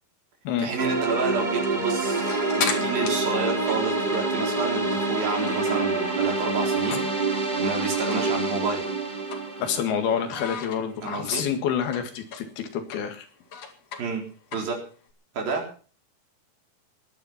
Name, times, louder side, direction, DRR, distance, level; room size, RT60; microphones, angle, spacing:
voice 1, 0.6-7.0 7.6-8.9 11.0-11.5 14.0-14.8 15.4-15.7, right 4 dB, 70° right, 2 dB, 5.6 m, -30 dB
sound 1, 0.8-10.8, right 3 dB, 15° right, 1.9 m, -27 dB
sound 2, 1.5-6.0 6.3-7.4 7.7-7.8 8.1-8.3 8.7-9.9 10.3-15.1, left 6 dB, 50° left, 2.9 m, -36 dB
voice 2, 9.6-13.3, left 8 dB, 90° left, 7 dB, 3.9 m, -28 dB
18.0 x 11.0 x 5.8 m, 0.39 s
omnidirectional pair, 4.3 m